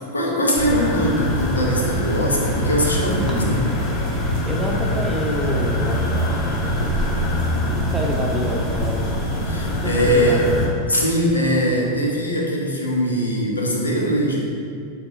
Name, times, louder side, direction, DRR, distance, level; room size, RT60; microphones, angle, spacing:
voice 1, 0.1-3.6 9.4-10.4 10.9-14.4, equal, 75° left, -2 dB, 1.1 m, -21 dB
sound 1, 0.5-10.7, left 1 dB, 30° left, 1.2 m, -23 dB
voice 2, 4.4-7.3 7.6-9.0 9.7-10.6, equal, 10° right, -1 dB, 0.9 m, -28 dB
9.7 x 4.1 x 3.2 m, 2.4 s
figure-of-eight pair, 90°, 0 cm